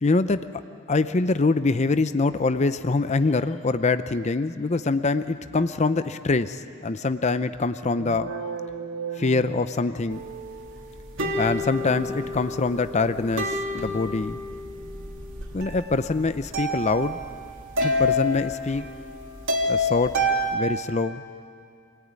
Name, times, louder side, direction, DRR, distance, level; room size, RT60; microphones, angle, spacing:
voice 1, 0.0-0.5 0.9-8.3 9.2-10.2 11.4-14.4 15.5-17.2 17.8-18.9 19.7-20.2 20.5-21.2, left 3 dB, 30° left, 11 dB, 0.6 m, -24 dB
sound 1, 7.8-10.4, right 5 dB, 80° right, 1.1 m, -35 dB
sound 2, 10.1-20.6, left 1 dB, 60° right, 2.8 m, -29 dB
25.0 x 18.0 x 9.6 m, 2.3 s
head